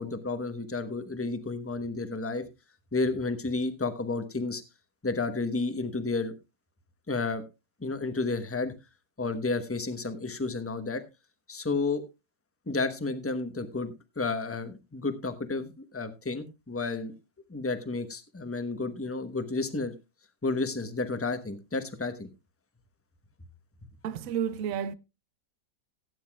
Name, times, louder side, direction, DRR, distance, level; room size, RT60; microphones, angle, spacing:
voice 1, 0.0-2.4 2.9-4.6 5.0-6.3 7.1-7.4 7.8-8.7 9.2-11.0 11.5-12.0 12.7-17.1 17.5-19.9 20.4-22.3, left 3 dB, 10° left, 0.8 m, -31 dB
voice 2, 24.0-24.9, right 8 dB, 60° right, 1.0 m, -31 dB
17.0 x 9.5 x 2.3 m
omnidirectional pair, 1.8 m